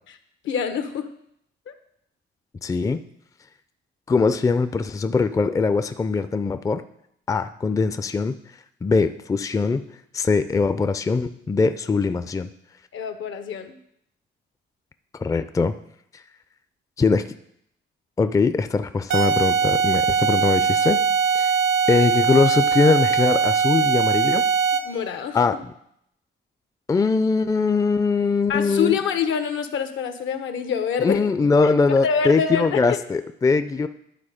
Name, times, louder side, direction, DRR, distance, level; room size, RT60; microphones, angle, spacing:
voice 1, 0.4-1.1 1.7-1.8 12.9-13.7 24.8-25.6 28.5-31.2 31.6-33.0, left 7 dB, 75° left, 9 dB, 0.9 m, -26 dB
voice 2, 2.6-3.0 4.1-6.8 7.3-8.4 8.8-9.8 10.1-12.5 15.2-15.8 17.0-17.3 18.2-21.0 21.3-21.5 21.9-24.4 25.3-25.7 26.9-29.0 31.0-33.9, left 4 dB, 15° left, 10 dB, 0.4 m, -21 dB
sound 1, 19.1-25.0, right 6 dB, 75° right, 0.7 m, -21 dB
11.5 x 3.9 x 5.0 m, 0.73 s
cardioid pair, 90°, 20 cm